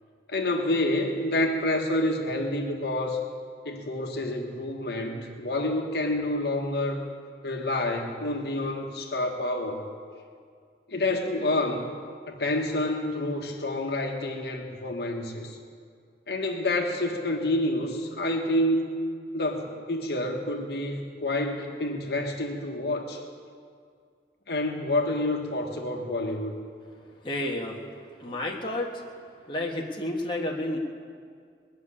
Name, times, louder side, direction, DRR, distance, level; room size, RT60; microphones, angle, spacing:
voice 1, 0.3-3.2 3.6-7.0 7.4-9.8 10.9-11.9 12.3-15.6 16.3-18.9 19.3-23.2 24.5-26.5, left 1 dB, 65° left, 2 dB, 1.5 m, -28 dB
voice 2, 27.2-27.8 28.2-29.0 29.5-30.8, left 1 dB, 25° left, -2 dB, 1.4 m, -30 dB
20.5 x 6.9 x 9.9 m, 2.1 s
head